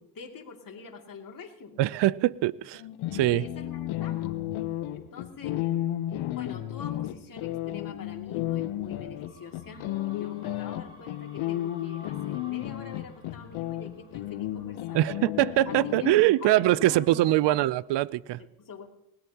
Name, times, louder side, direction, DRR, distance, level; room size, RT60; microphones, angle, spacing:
voice 1, 0.0-1.8 3.3-4.4 4.9-5.6 6.3-15.2 15.7-16.1 16.4-17.7 18.6-18.9, left 5 dB, 40° left, 2.6 m, -45 dB
voice 2, 1.8-2.8 3.1-3.4 14.9-18.4, right 15 dB, 55° right, 0.6 m, -23 dB
sound 1, 2.7-16.1, left 13 dB, 70° left, 1.0 m, -33 dB
sound 2, 9.2-18.1, equal, 10° right, 5.2 m, -55 dB
20.0 x 17.5 x 2.9 m
supercardioid pair, 90°, 50 cm